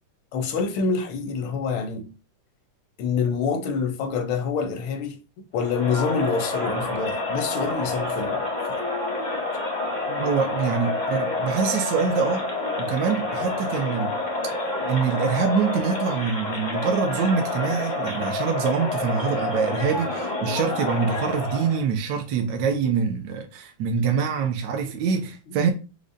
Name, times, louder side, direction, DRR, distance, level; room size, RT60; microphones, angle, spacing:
voice 1, 0.3-2.1 3.0-5.2 5.5-8.4 8.7-8.8 10.1-10.3 14.8-14.9 16.7-16.8 17.0-17.2 20.4-20.5, left 5 dB, 85° left, 1.4 m, -27 dB
Crowd, 5.6-21.9, left 2 dB, 45° left, 0.6 m, -28 dB
voice 2, 10.2-12.4 12.8-14.2 14.9-25.7, right 6 dB, 70° right, 1.1 m, -25 dB
5.0 x 2.1 x 2.5 m
omnidirectional pair, 2.1 m